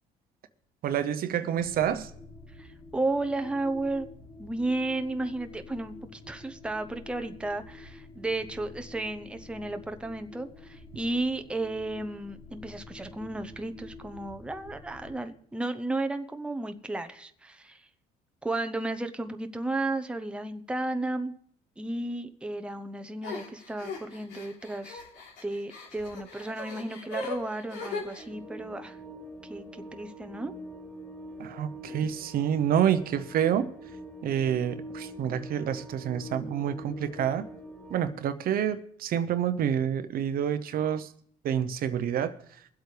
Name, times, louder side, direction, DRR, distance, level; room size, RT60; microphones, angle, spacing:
voice 1, 0.8-2.1 31.4-33.7 34.2-37.5 37.9-41.1 41.4-42.3, right 9 dB, 60° right, 11 dB, 0.8 m, -28 dB
sound 1, 1.6-15.2, left 3 dB, 50° left, 4.2 m, -48 dB
voice 2, 2.6-4.1 4.4-17.9 18.4-21.3 21.8-25.0 25.4-29.0 29.4-30.5, right 2 dB, 5° right, 7 dB, 0.7 m, -33 dB
sound 2, 23.2-28.2, left 3 dB, 90° left, 3.4 m, -39 dB
sound 3, 28.2-38.1, right 1 dB, 10° left, 2.4 m, -44 dB
22.5 x 8.1 x 3.3 m, 0.62 s
cardioid pair, 110°, 17 cm